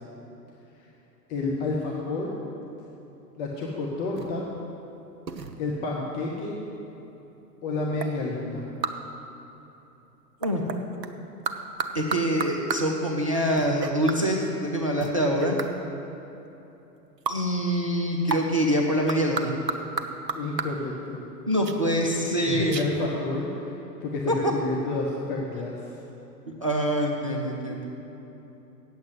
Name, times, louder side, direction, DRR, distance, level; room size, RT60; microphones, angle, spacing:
voice 1, 1.3-2.3 3.4-4.4 5.6-6.6 7.6-8.6 20.3-21.2 22.4-23.5 24.0-25.8, left 3 dB, 20° left, -3 dB, 0.8 m, -29 dB
sound 1, 4.2-4.4 5.3-5.7 8.0-8.2 8.8-9.1 10.4-11.1 11.5-13.0 13.6-14.2 15.0-15.7 17.3-17.5 18.3-18.5 19.1-20.8 21.7-21.8 22.4-22.5 22.7-22.9, right 5 dB, 75° right, 0.8 m, -32 dB
voice 2, 11.9-15.6 17.3-19.5 21.5-22.8 24.3-24.4 26.5-27.9, equal, 25° right, -2 dB, 0.3 m, -25 dB
8.7 x 7.9 x 8.0 m, 3.0 s
figure-of-eight pair, 110°, 50 cm